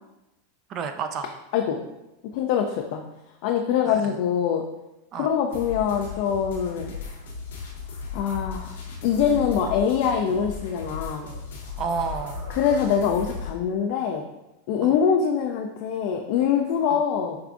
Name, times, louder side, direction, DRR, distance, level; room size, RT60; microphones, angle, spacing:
voice 1, 0.7-1.3 3.9-4.2 5.1-5.3 11.8-12.4 14.8-14.9 16.9-17.0, right 5 dB, 40° right, 7 dB, 0.4 m, -31 dB
voice 2, 2.3-3.0 3.4-4.6 5.1-6.9 8.1-8.8 9.0-11.3 12.5-14.2 14.7-17.4, left 7 dB, 60° left, 3 dB, 0.3 m, -24 dB
sound 1, 5.5-13.5, left 5 dB, 85° left, 0.8 m, -36 dB
sound 2, 10.5-11.5 11.8-13.2, right 3 dB, 65° right, 0.8 m, -44 dB
4.6 x 2.4 x 2.5 m, 0.94 s
hypercardioid pair, 110°, 0 cm